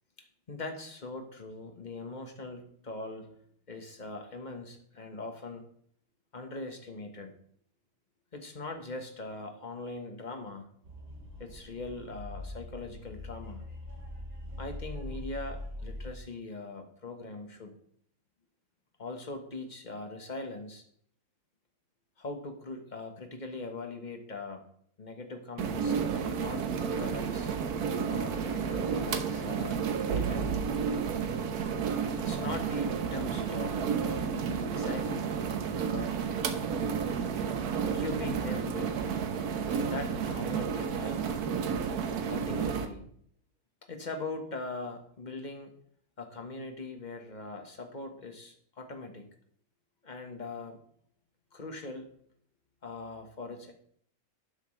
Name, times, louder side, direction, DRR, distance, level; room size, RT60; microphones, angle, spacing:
voice 1, 0.5-3.3 3.7-5.6 6.3-7.4 8.3-10.7 11.4-13.6 14.6-17.7 19.0-20.8 22.2-24.6 25.0-27.5 28.1-30.5 32.2-35.3 35.8-36.1 37.8-39.0 39.8-41.2 42.3-43.1 43.9-45.7 46.2-49.3 50.0-50.8 51.5-52.1 52.8-53.7, left 3 dB, 30° left, 5 dB, 1.5 m, -41 dB
sound 1, 10.8-16.1, left 1 dB, 70° right, 3.2 m, -42 dB
sound 2, 25.6-42.9, right 6 dB, 90° right, 1.5 m, -31 dB
12.0 x 9.5 x 3.3 m, 0.64 s
omnidirectional pair, 1.6 m